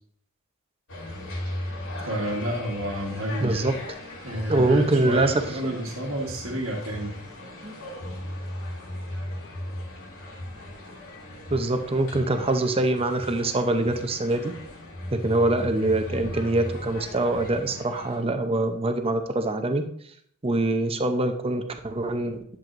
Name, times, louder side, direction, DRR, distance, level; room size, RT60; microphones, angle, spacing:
sound 1, 0.9-18.2, left 1 dB, 75° left, 2.7 m, -37 dB
voice 1, 2.1-3.7 4.2-7.2, equal, 65° right, -2 dB, 1.4 m, -30 dB
voice 2, 3.4-3.7 4.5-5.4 7.6-7.8 11.5-14.5 15.1-19.8 20.4-22.4, right 2 dB, 25° right, 7 dB, 0.7 m, -24 dB
10.5 x 7.7 x 2.6 m, 0.65 s
head